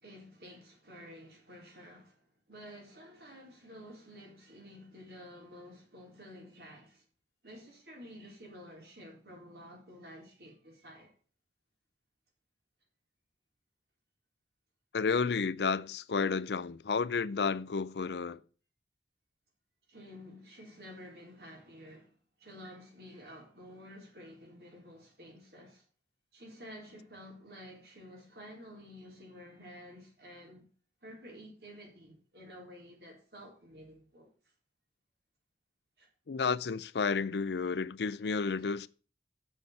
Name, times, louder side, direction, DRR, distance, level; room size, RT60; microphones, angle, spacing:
voice 1, 0.0-7.0 7.4-11.1 19.9-25.9 26.3-30.7 31.0-34.3 36.0-36.1, equal, 65° right, 3.7 m, -51 dB
voice 2, 14.9-18.4 36.3-38.9, left 5 dB, 75° left, 0.5 m, -31 dB
7.1 x 6.3 x 7.8 m
head